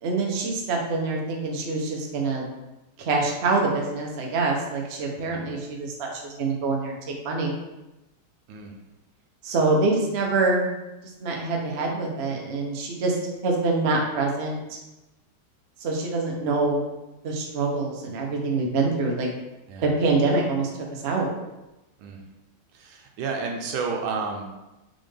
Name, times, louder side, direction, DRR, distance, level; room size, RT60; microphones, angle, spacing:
voice 1, 0.0-2.5 3.0-7.0 7.2-7.5 9.4-10.7 11.2-13.2 13.4-14.8 15.8-16.8 17.2-19.3 19.8-21.3, right 3 dB, 60° right, 0 dB, 0.6 m, -25 dB
voice 2, 5.2-5.6 8.5-8.7 19.7-19.9 22.0-22.2 22.7-24.4, right 4 dB, 80° right, 2 dB, 1.5 m, -31 dB
4.2 x 3.8 x 3.3 m, 1.0 s
omnidirectional pair, 2.2 m